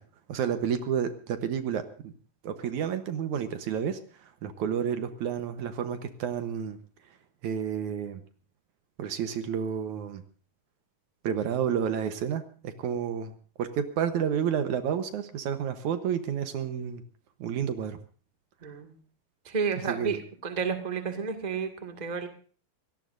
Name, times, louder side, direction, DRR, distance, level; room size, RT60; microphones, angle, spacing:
voice 1, 0.3-2.1 2.4-4.0 4.4-6.8 7.4-8.2 9.0-10.2 11.2-13.3 13.6-17.0 17.4-18.0 19.9-20.2, right 8 dB, 70° right, 9 dB, 2.3 m, -30 dB
voice 2, 18.6-18.9 19.4-20.2 20.4-22.3, right 5 dB, 15° right, 6 dB, 1.5 m, -31 dB
24.0 x 17.5 x 2.6 m, 0.40 s
omnidirectional pair, 3.7 m